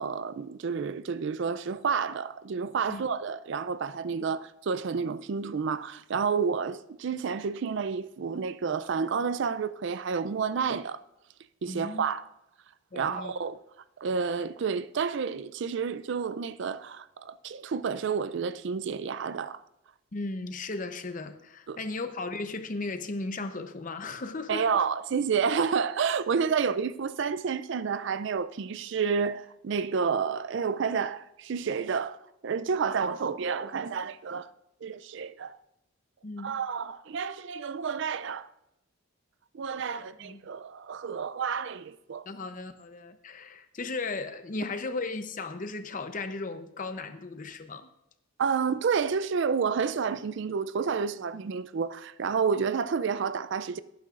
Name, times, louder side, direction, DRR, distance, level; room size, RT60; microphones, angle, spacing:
voice 1, 0.0-11.0 11.6-12.3 12.9-13.6 14.0-19.6 21.7-21.8 24.5-34.5 34.8-35.6 36.4-38.5 39.5-42.2 48.4-53.8, right 6 dB, 60° right, 0.4 m, -30 dB
voice 2, 11.7-12.0 12.9-13.3 20.1-24.8 36.2-36.6 40.2-40.5 42.3-47.9, left 3 dB, 40° left, 0.7 m, -36 dB
18.0 x 9.4 x 2.5 m
head